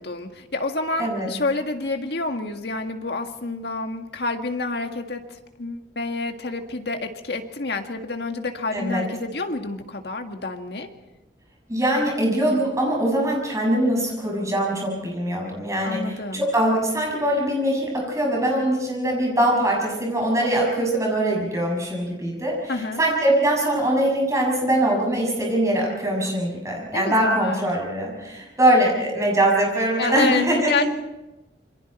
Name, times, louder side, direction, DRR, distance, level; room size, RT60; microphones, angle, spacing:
voice 1, 0.0-10.9 15.8-16.4 22.7-23.0 26.9-27.7 30.0-30.9, left 3 dB, 60° left, 4 dB, 1.9 m, -28 dB
voice 2, 8.7-9.0 11.7-30.9, right 1 dB, 15° right, -1 dB, 6.7 m, -22 dB
27.5 x 23.5 x 4.4 m, 1.0 s
head